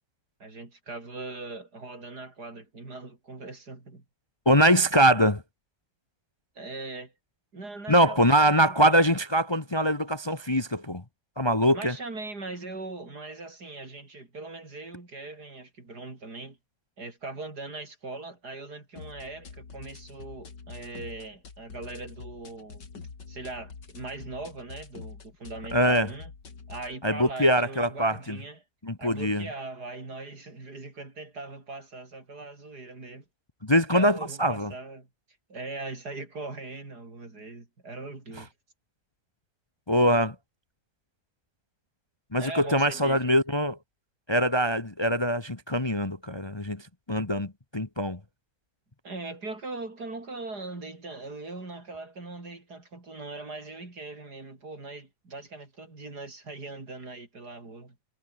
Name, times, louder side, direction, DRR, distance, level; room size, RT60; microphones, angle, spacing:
voice 1, 0.4-4.0 6.6-7.1 7.5-9.1 11.7-16.6 17.0-22.9 23.3-26.3 26.7-28.6 29.0-33.3 33.9-35.1 35.5-38.5 42.4-43.3 49.0-58.0, right 3 dB, 65° right, 5.4 m, -40 dB
voice 2, 4.4-5.4 7.9-11.0 11.4-11.9 25.7-26.1 27.0-28.4 28.8-29.5 33.6-34.7 39.9-40.3 42.3-43.8 44.3-48.2, equal, 15° left, 1.4 m, -23 dB
sound 1, 19.0-27.0, left 5 dB, 90° left, 3.4 m, -45 dB
omnidirectional pair, 1.8 m